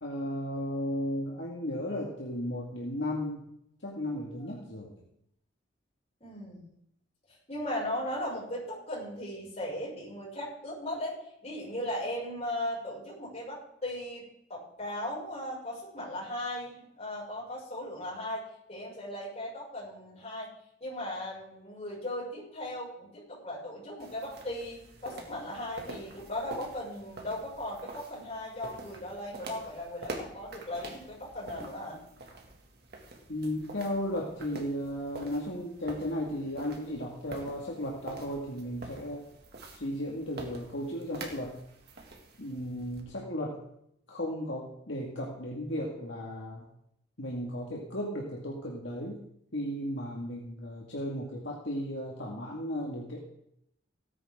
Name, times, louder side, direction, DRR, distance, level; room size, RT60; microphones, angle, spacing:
voice 1, 0.0-3.5 3.8-4.9 33.3-39.2 39.7-41.6 42.4-43.6 44.1-46.6 47.2-49.2 49.5-53.2, equal, 65° left, -3 dB, 2.1 m, -35 dB
voice 2, 6.2-6.7 7.5-14.2 14.5-18.4 18.7-20.5 20.8-32.0, left 1 dB, 35° left, -5 dB, 6.4 m, -37 dB
sound 1, 24.0-43.0, right 2 dB, 55° right, 2.3 m, -47 dB
18.0 x 10.0 x 3.8 m, 0.74 s
head